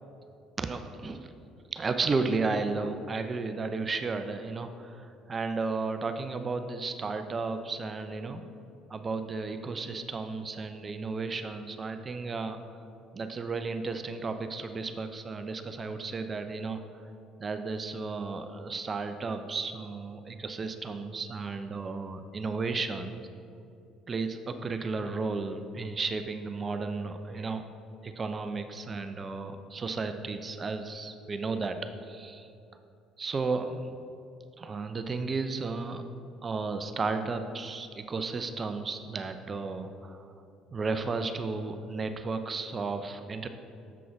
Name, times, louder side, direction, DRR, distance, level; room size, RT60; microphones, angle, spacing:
voice 1, 0.6-1.3 1.7-8.4 8.9-12.6 13.1-16.8 17.4-23.2 24.1-27.6 28.0-32.5 33.2-34.0 34.6-36.0 36.4-40.3 40.7-43.5, right 4 dB, 35° right, 8 dB, 0.5 m, -33 dB
7.0 x 6.2 x 4.5 m, 2.6 s
hypercardioid pair, 55°, 0 cm